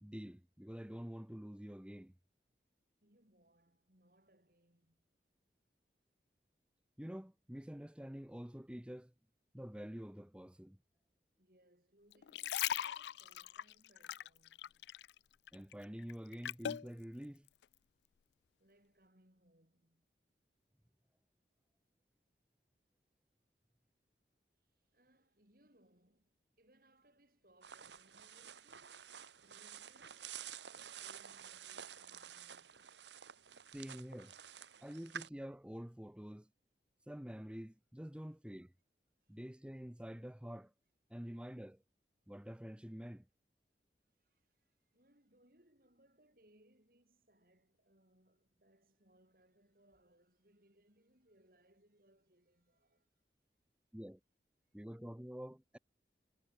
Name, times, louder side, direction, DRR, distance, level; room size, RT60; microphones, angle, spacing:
voice 1, 0.0-2.1 7.0-9.1 9.5-10.8 15.5-17.5 33.7-34.3 34.8-36.5 37.1-38.7 39.3-40.7 41.1-41.8 42.3-43.3 53.9-54.2 54.7-55.8, equal, 5° right, 0.6 m, -47 dB
voice 2, 3.0-5.1 11.4-14.9 18.6-20.1 24.7-33.4 38.2-38.3 39.2-39.4 44.2-53.1, right 1 dB, 50° right, 5.7 m, -71 dB
sound 1, 12.1-15.2 15.5-16.9 17.5-17.6, left 10 dB, 75° left, 0.3 m, -40 dB
sound 2, 27.6-35.3, right 8 dB, 80° right, 1.6 m, -51 dB
head